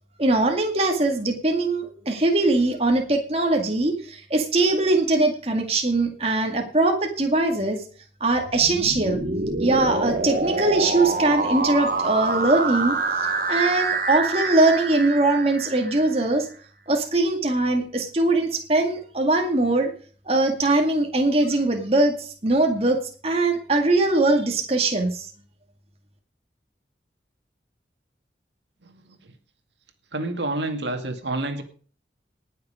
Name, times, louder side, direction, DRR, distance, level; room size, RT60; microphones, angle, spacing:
voice 1, 0.2-7.8 8.2-9.2 9.6-13.0 13.5-16.5 16.9-19.9 20.3-25.3, right 2 dB, 35° right, 3 dB, 2.2 m, -21 dB
sound 1, 8.4-16.3, right 3 dB, 50° right, 1.6 m, -26 dB
voice 2, 30.1-31.6, right 2 dB, 85° right, 6 dB, 2.1 m, -28 dB
19.0 x 6.9 x 5.1 m, 0.41 s
head